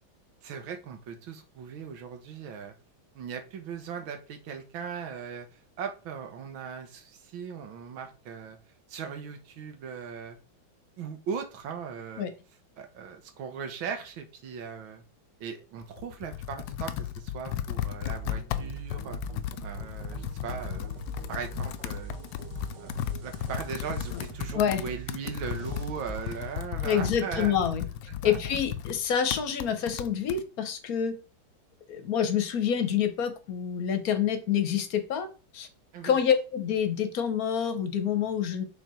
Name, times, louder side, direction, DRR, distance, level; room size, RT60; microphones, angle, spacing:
voice 1, 0.4-2.7 3.1-8.6 8.9-10.4 11.0-12.3 12.8-15.0 15.4-19.2 19.6-20.9 21.3-22.2 22.8-22.9 23.2-27.6 28.2-28.4 35.9-36.2, right 6 dB, 80° right, 6 dB, 1.8 m, -38 dB
Computer keyboard, 15.8-30.4, left 11 dB, 75° left, 1.1 m, -35 dB
sound 1, 18.0-26.7, right 10 dB, 65° right, 1.7 m, -43 dB
voice 2, 26.8-27.8 28.2-31.2 31.9-35.3 35.5-35.7 36.0-38.6, left 8 dB, 55° left, 9 dB, 1.2 m, -27 dB
6.5 x 3.7 x 4.3 m, 0.34 s
omnidirectional pair, 2.2 m